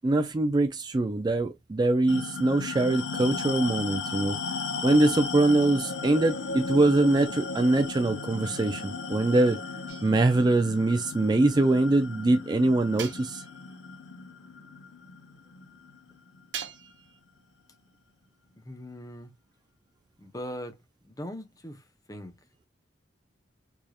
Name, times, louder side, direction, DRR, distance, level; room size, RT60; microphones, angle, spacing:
voice 1, 0.0-4.4 4.8-9.6 10.0-13.4, right 2 dB, 20° right, 0.3 m, -23 dB
sound 1, 2.1-16.9, left 4 dB, 70° left, 0.8 m, -36 dB
sound 2, 9.9-10.5 13.0-13.8 16.5-17.2, right 8 dB, 70° right, 0.8 m, -41 dB
voice 2, 18.6-19.3 20.2-20.8 21.0-22.3, equal, 20° left, 0.7 m, -40 dB
4.8 x 2.7 x 2.3 m
head